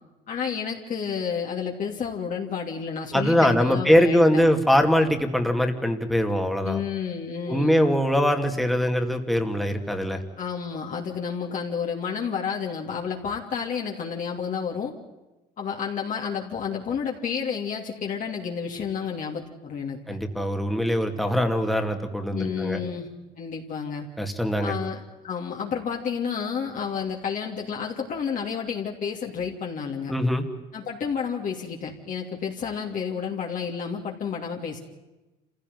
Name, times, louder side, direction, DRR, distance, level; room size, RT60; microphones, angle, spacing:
voice 1, 0.3-4.5 6.6-7.8 10.4-14.9 15.6-20.2 22.3-23.1 23.4-24.1 24.6-30.1 30.7-34.8, left 6 dB, 50° left, 0 dB, 3.0 m, -30 dB
voice 2, 3.1-6.8 7.5-10.2 20.1-22.8 24.2-24.7 30.1-30.5, equal, ahead, 4 dB, 2.4 m, -22 dB
27.0 x 16.0 x 9.4 m, 1.1 s
cardioid pair, 110°, 17 cm